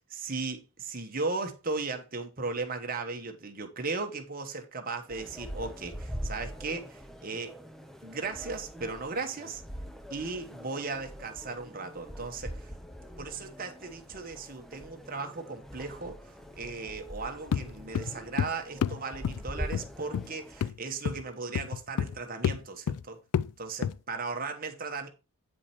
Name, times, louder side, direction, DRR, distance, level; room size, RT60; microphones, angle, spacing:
voice 1, 0.1-7.5 8.0-9.6 10.1-12.7 13.2-16.2 16.5-23.2 23.6-25.1, right 4 dB, 40° right, 1.2 m, -36 dB
sound 1, 5.1-20.7, equal, ahead, 0.6 m, -43 dB
sound 2, 17.5-17.7 18.0-18.5 18.8-19.0 19.2-19.4 19.7-19.9 20.1-20.3 20.6-20.8 21.1-21.2 21.6-22.2 22.4-22.6 22.9-23.0 23.3-23.5 23.8-24.0, left 8 dB, 85° left, 0.3 m, -29 dB
8.8 x 5.0 x 4.3 m
head